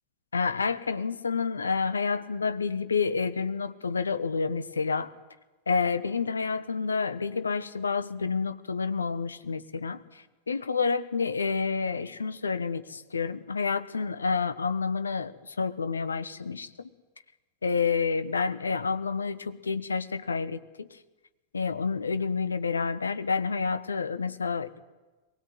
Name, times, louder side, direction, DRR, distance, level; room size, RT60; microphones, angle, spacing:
voice 1, 0.3-5.1 5.7-16.9 17.6-20.9 21.5-24.8, left 5 dB, 75° left, 12 dB, 1.2 m, -29 dB
23.0 x 19.5 x 7.9 m, 1.2 s
figure-of-eight pair, 90°, 0 cm